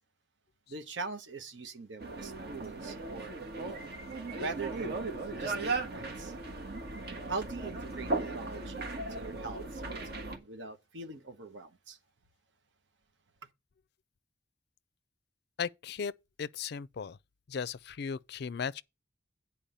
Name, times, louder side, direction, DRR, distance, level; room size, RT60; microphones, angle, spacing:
voice 1, 0.7-4.0 4.4-6.3 7.3-12.0, right 3 dB, 70° right, 1.1 m, -42 dB
sound 1, 2.0-10.4, right 3 dB, 55° right, 1.5 m, -37 dB
voice 2, 15.6-16.1 16.4-17.2 17.5-18.8, left 6 dB, 55° left, 0.4 m, -36 dB
9.0 x 4.5 x 6.8 m
head